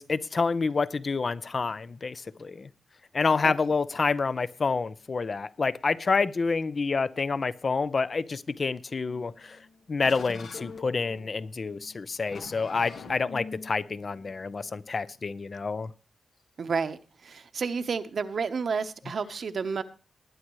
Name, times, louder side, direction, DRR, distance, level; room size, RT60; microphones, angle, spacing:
voice 1, 0.0-2.7 3.1-9.6 9.9-15.9, left 4 dB, 50° left, 0.6 m, -28 dB
sound 1, 9.4-15.6, left 4 dB, 80° left, 1.4 m, -46 dB
voice 2, 16.6-19.8, right 5 dB, 65° right, 0.9 m, -31 dB
20.0 x 9.7 x 3.1 m
wide cardioid pair, 90°, 0 cm